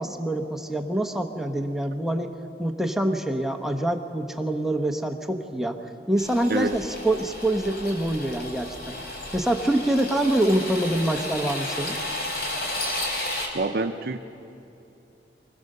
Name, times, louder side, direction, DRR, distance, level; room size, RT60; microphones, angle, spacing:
voice 1, 0.0-2.3 2.6-5.8 6.1-9.0 9.3-12.0, right 1 dB, ahead, 3 dB, 0.9 m, -25 dB
sound 1, 6.2-13.5, left 1 dB, 65° left, 3.4 m, -33 dB
voice 2, 13.5-14.2, right 3 dB, 60° right, 6 dB, 0.7 m, -26 dB
25.0 x 16.5 x 6.6 m, 2.8 s
head